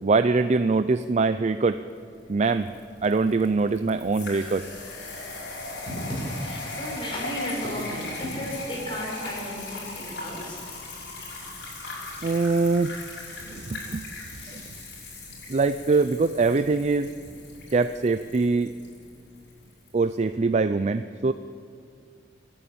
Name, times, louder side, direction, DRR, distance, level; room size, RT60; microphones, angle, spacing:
voice 1, 0.0-1.8 2.3-4.6 12.2-13.0 13.4-14.0 14.5-14.6 15.5-17.1 17.7-18.7 19.9-21.3, right 3 dB, 40° right, 11 dB, 0.4 m, -23 dB
sound 1, 1.9-20.0, left 2 dB, 70° left, 6.3 m, -39 dB
voice 2, 5.8-10.6, equal, 30° left, -2 dB, 6.1 m, -34 dB
27.5 x 11.0 x 8.7 m, 2.3 s
head